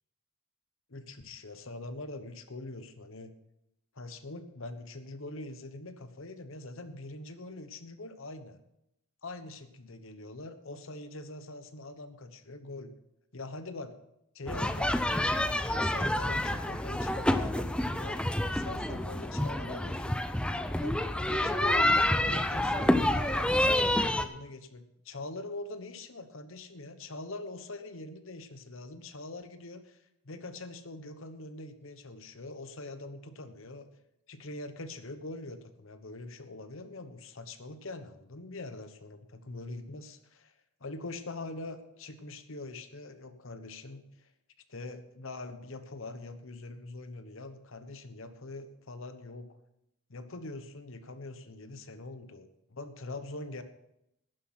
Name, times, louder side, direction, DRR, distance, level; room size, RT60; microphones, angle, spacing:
voice 1, 0.9-3.3 3.9-8.6 9.2-12.9 13.3-13.9 14.3-15.1 15.7-18.2 18.5-20.2 20.7-33.9 34.3-44.3 44.7-49.6 50.1-53.6, left 2 dB, 65° left, 10 dB, 1.1 m, -43 dB
sound 1, 14.5-24.2, left 1 dB, 5° left, 0.5 m, -28 dB
12.0 x 10.0 x 5.9 m, 0.82 s
head